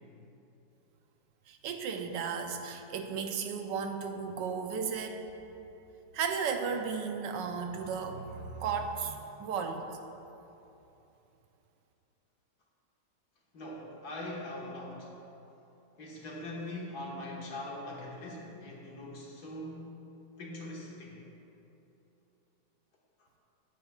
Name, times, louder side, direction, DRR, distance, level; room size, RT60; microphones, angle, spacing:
voice 1, 1.5-5.2 6.1-9.9, right 6 dB, 85° right, 5 dB, 1.3 m, -34 dB
voice 2, 13.5-15.1 16.0-20.0 20.4-21.2, left 1 dB, 65° left, -3 dB, 2.0 m, -42 dB
15.0 x 9.2 x 2.3 m, 2.9 s
omnidirectional pair, 1.9 m